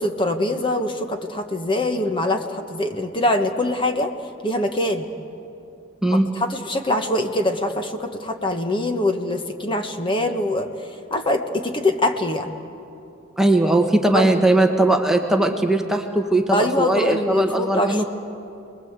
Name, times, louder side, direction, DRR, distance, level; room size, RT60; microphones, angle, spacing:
voice 1, 0.0-4.1 4.4-5.1 6.1-12.5 14.1-14.4 16.5-18.0, left 1 dB, 25° left, 5 dB, 1.3 m, -23 dB
voice 2, 13.4-18.0, right 2 dB, ahead, 3 dB, 1.1 m, -19 dB
28.0 x 21.0 x 8.1 m, 2.7 s
head